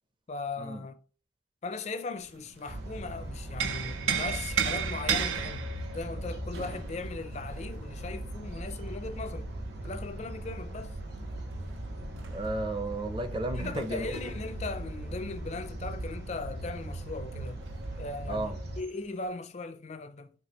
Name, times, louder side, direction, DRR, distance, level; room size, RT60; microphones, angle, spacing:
voice 1, 0.3-1.0 1.6-5.7 5.9-9.5 9.8-11.0 13.5-17.6 18.0-20.3, left 3 dB, 35° left, 0.4 m, -38 dB
sound 1, 2.2-3.0 3.3-8.8 10.7-16.5 16.8-16.9 17.3-18.0 18.8-19.0, right 8 dB, 85° right, 0.6 m, -35 dB
sound 2, 2.7-18.8, right 1 dB, 55° right, 1.0 m, -39 dB
voice 2, 12.3-14.1 18.3-18.5, right 2 dB, 25° right, 0.5 m, -33 dB
5.9 x 2.9 x 2.9 m
head